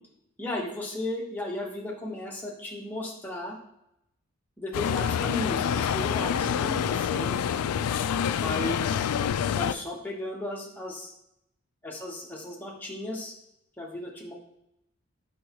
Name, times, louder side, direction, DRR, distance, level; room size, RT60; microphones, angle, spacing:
voice 1, 0.4-3.6 4.6-7.4 8.3-8.8 9.5-11.1 11.8-13.3 13.8-14.3, left 1 dB, 10° left, -2 dB, 1.0 m, -35 dB
sound 1, 4.7-9.7, left 8 dB, 85° left, 0.3 m, -27 dB
6.2 x 5.7 x 3.0 m, 0.82 s
head